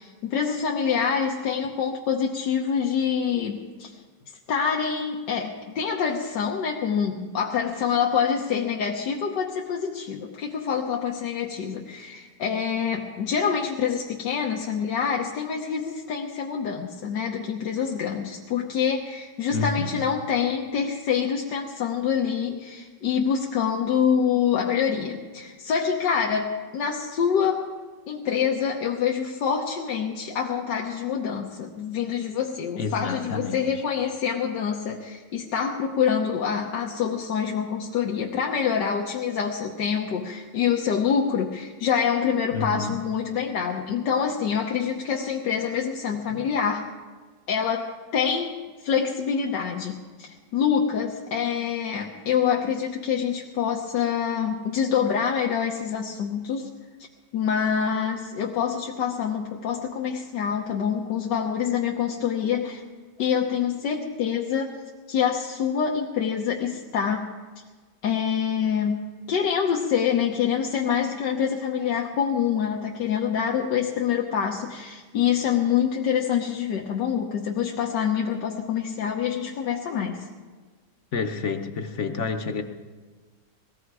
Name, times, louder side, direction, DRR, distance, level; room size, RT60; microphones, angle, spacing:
voice 1, 0.0-4.0 4.5-27.7 28.1-46.9 47.5-56.7 57.3-62.8 63.2-64.7 65.1-67.3 68.0-80.3, left 7 dB, 90° left, 0 dB, 1.6 m, -26 dB
voice 2, 19.5-20.0 32.8-33.8 42.5-42.9 46.3-46.4 81.1-82.6, left 4 dB, 55° left, 7 dB, 1.0 m, -29 dB
19.0 x 15.0 x 4.8 m, 1.4 s
omnidirectional pair, 1.8 m